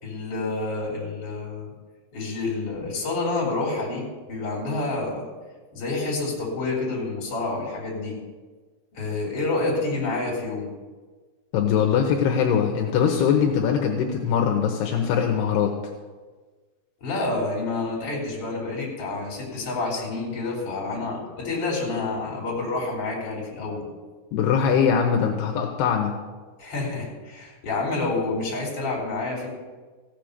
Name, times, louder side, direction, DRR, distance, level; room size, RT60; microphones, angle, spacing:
voice 1, 0.0-1.7 2.1-5.3 5.7-8.2 8.9-10.7 17.0-23.9 26.6-29.5, left 3 dB, 35° left, -3 dB, 4.1 m, -28 dB
voice 2, 11.5-15.7 24.3-26.1, left 7 dB, 80° left, 2 dB, 3.0 m, -22 dB
15.5 x 7.6 x 6.8 m, 1.4 s
omnidirectional pair, 4.8 m